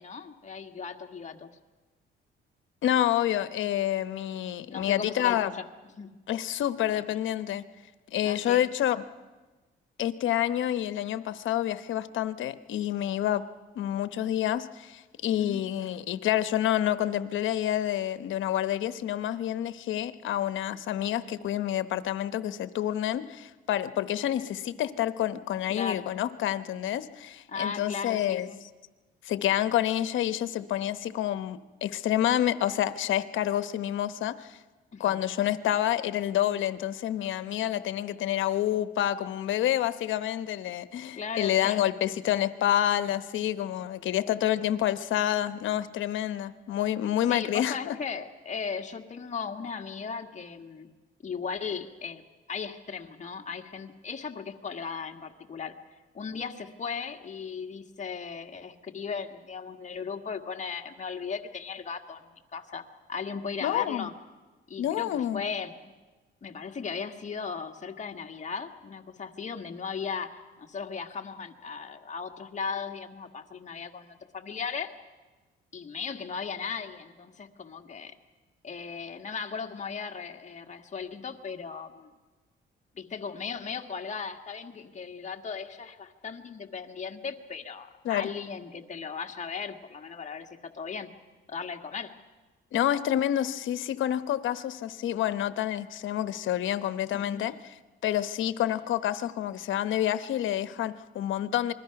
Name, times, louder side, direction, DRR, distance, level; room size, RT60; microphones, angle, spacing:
voice 1, 0.0-1.5 4.7-5.6 5.9-6.2 6.9-7.0 8.2-8.6 15.4-15.6 25.7-26.1 27.5-28.6 34.9-35.2 41.1-41.8 47.3-50.9 51.2-52.2 52.5-55.7 56.1-62.2 62.5-64.1 64.7-65.9 66.4-74.9 75.7-78.2 78.6-82.1 82.9-91.1 91.5-92.1 97.1-97.5, left 5 dB, 35° left, 3 dB, 1.7 m, -37 dB
voice 2, 2.8-5.5 6.3-7.6 8.1-9.0 10.0-13.4 13.8-28.5 29.2-34.6 35.0-47.9 63.6-64.1 64.8-65.4 88.0-88.3 92.7-97.6 98.0-101.7, left 12 dB, 75° left, 12 dB, 0.9 m, -28 dB
27.0 x 21.0 x 5.9 m, 1.3 s
cardioid pair, 90°, 20 cm